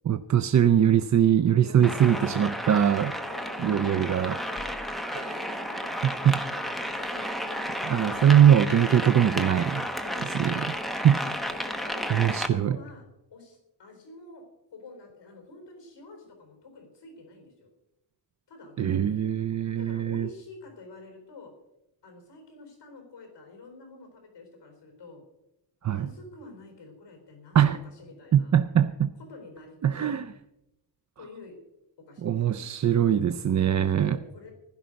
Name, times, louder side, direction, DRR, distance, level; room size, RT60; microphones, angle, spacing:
voice 1, 0.1-3.2 3.6-4.3 5.1-5.3 6.2-6.4 7.9-9.9 10.2-11.2 12.1-12.8 18.8-20.3 25.8-26.0 27.5-27.8 28.3-29.1 29.8-30.3 32.2-34.2, right 9 dB, 40° right, 11 dB, 0.5 m, -22 dB
voice 2, 1.6-8.3 10.0-10.6 11.0-13.0 13.3-14.4 14.7-17.7 18.5-19.2 19.8-21.5 22.0-25.2 25.8-28.5 29.2-30.2 31.2-31.6 32.1-32.7 33.9-34.5, left 3 dB, 65° left, 3 dB, 4.1 m, -48 dB
sound 1, 1.8-12.5, equal, ahead, 0.9 m, -32 dB
15.5 x 12.0 x 5.2 m, 0.88 s
wide cardioid pair, 165°, 45 cm